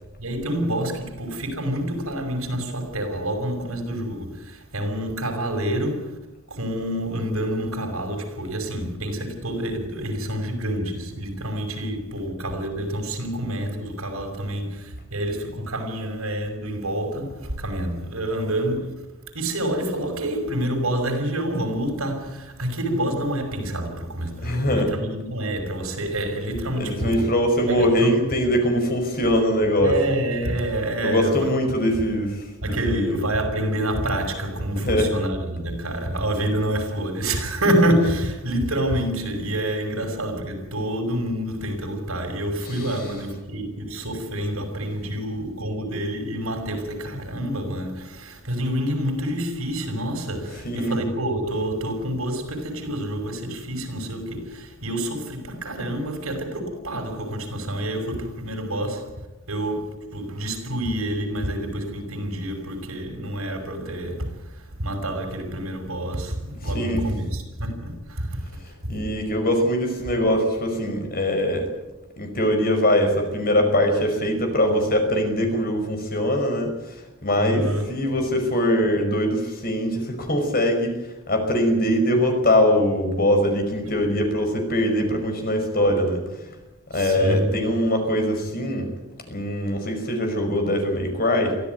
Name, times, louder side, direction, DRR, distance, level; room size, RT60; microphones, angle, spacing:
voice 1, 0.2-6.2 6.5-19.0 19.3-27.3 27.7-28.2 29.8-31.5 32.6-69.1 77.4-77.9 86.9-87.5, right 1 dB, 75° right, 5.8 m, -27 dB
voice 2, 24.4-24.9 26.7-29.9 31.0-33.2 34.8-35.1 42.8-42.9 50.6-51.0 66.7-67.0 68.9-71.7 72.2-77.0 77.2-81.0 81.3-86.2 86.9-88.9 89.3-91.6, equal, 45° left, 5.3 m, -22 dB
24.0 x 15.0 x 9.4 m
head